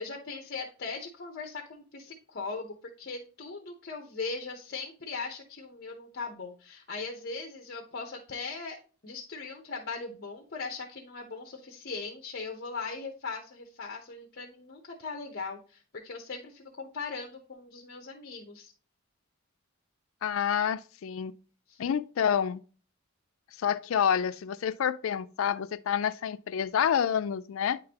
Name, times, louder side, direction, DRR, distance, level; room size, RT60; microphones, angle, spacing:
voice 1, 0.0-8.8 9.0-18.7 21.7-21.8, left 4 dB, 50° left, 0.8 m, -39 dB
voice 2, 20.2-21.3 21.8-22.6 23.6-27.8, left 8 dB, 70° left, 0.4 m, -28 dB
9.3 x 3.8 x 2.8 m
head